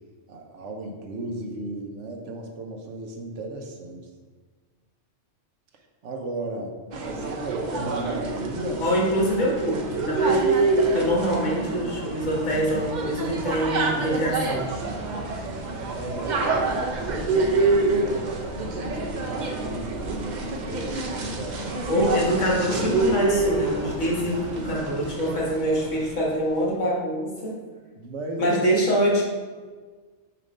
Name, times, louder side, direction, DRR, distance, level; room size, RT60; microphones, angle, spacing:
voice 1, 0.3-4.1 6.0-6.7 7.0-8.8 15.9-16.4 17.2-21.7 25.2-25.4 28.0-28.6, right 2 dB, 65° right, 2 dB, 1.0 m, -35 dB
sound 1, 6.9-26.2, right 3 dB, 45° right, 0.6 m, -27 dB
voice 2, 8.8-10.7 10.9-14.6 21.9-27.6 28.4-29.2, equal, 70° left, -3 dB, 1.7 m, -25 dB
sound 2, 12.2-24.7, left 1 dB, 85° right, 1.7 m, -41 dB
6.7 x 2.9 x 5.2 m, 1.5 s
omnidirectional pair, 1.4 m